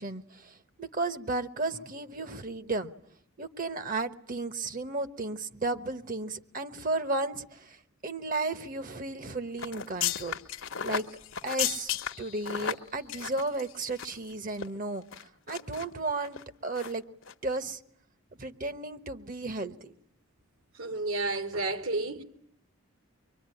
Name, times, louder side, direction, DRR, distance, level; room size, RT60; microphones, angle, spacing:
voice 1, 0.0-2.9 3.4-7.8 8.0-10.4 10.8-11.1 11.4-15.0 15.5-17.0 17.4-17.8 18.4-19.9, right 2 dB, 40° right, 1.2 m, -34 dB
sound 1, 9.6-14.3 14.5-14.7 15.1-15.9 16.2-16.4 16.8-17.0 17.2-17.3, left 9 dB, 60° left, 1.1 m, -34 dB
voice 2, 20.8-22.2, right 2 dB, 75° right, 3.0 m, -31 dB
25.0 x 23.5 x 9.9 m
head